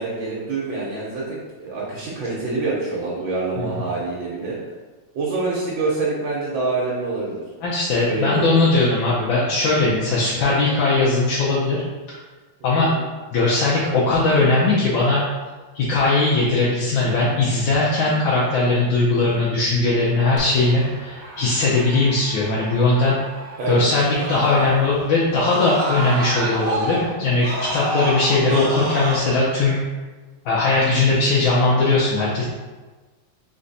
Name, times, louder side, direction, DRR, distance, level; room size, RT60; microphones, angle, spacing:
voice 1, 0.0-4.6 5.1-7.4 8.0-8.7 12.6-12.9 23.6-23.8, right 3 dB, 80° right, -6 dB, 1.7 m, -26 dB
voice 2, 7.6-11.8 12.1-12.2 12.6-12.9 13.3-15.2 15.7-23.2 23.7-29.8 30.4-32.4, left 3 dB, 80° left, -7 dB, 1.5 m, -19 dB
Screaming, 20.4-25.0 25.3-29.2, right 1 dB, 60° right, 1.1 m, -29 dB
3.9 x 3.3 x 3.9 m, 1.3 s
omnidirectional pair, 2.1 m